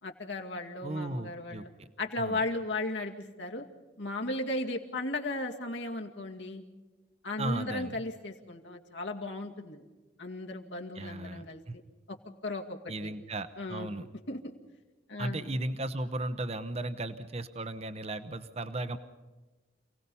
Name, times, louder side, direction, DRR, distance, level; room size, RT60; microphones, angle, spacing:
voice 1, 0.0-1.7 2.0-3.7 4.0-6.6 7.2-9.8 10.2-11.6 12.1-12.2 12.4-13.1 13.6-13.9 14.3-14.5 15.1-15.4, left 2 dB, 75° left, 2 dB, 2.3 m, -36 dB
voice 2, 0.8-1.9 2.2-2.4 7.4-8.0 10.9-11.7 12.9-14.0 15.2-19.0, right 2 dB, 35° right, 12 dB, 0.9 m, -36 dB
28.5 x 18.5 x 5.5 m, 1.2 s
head